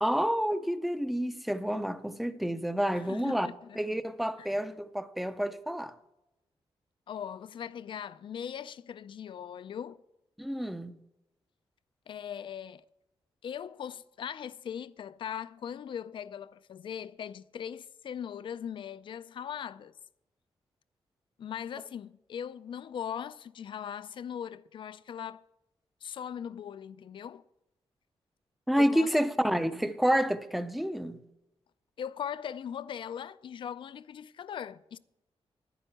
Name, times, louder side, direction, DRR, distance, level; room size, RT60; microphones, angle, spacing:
voice 1, 0.0-3.5 3.8-5.9 10.4-10.9 28.7-31.2, equal, ahead, 0.5 m, -29 dB
voice 2, 2.9-3.8 4.4-4.6 7.1-10.0 12.1-12.8 13.4-20.0 21.4-25.5 26.0-27.5 28.8-29.1 32.0-35.0, left 8 dB, 55° left, 0.4 m, -40 dB
10.0 x 9.9 x 6.8 m
wide cardioid pair, 175°, 10 cm